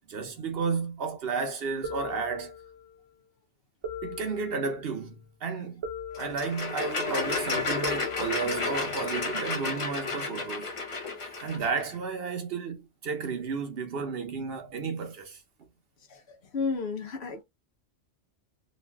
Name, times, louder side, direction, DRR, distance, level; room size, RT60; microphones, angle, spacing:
voice 1, 0.1-2.6 4.0-5.8 6.2-10.7 11.4-15.4, right 5 dB, 60° right, 0.9 m, -32 dB
sound 1, 1.8-3.0 3.8-5.0 5.8-7.0 7.8-9.0, left 2 dB, 30° right, 0.7 m, -40 dB
sound 2, 6.1-11.8, left 3 dB, 35° left, 0.6 m, -32 dB
voice 2, 16.1-17.4, left 4 dB, 70° left, 1.0 m, -33 dB
3.1 x 2.4 x 2.2 m
omnidirectional pair, 1.2 m